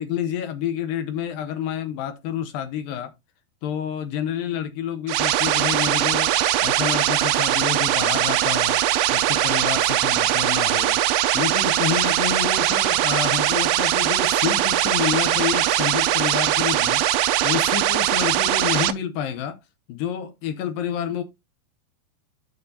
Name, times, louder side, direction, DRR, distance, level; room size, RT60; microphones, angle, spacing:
voice 1, 0.0-3.1 3.6-6.3 6.6-11.0 11.3-19.6 19.9-21.2, left 9 dB, 80° left, 2.0 m, -29 dB
sound 1, 5.1-18.9, right 13 dB, 85° right, 2.2 m, -21 dB
13.0 x 4.4 x 2.8 m
omnidirectional pair, 5.1 m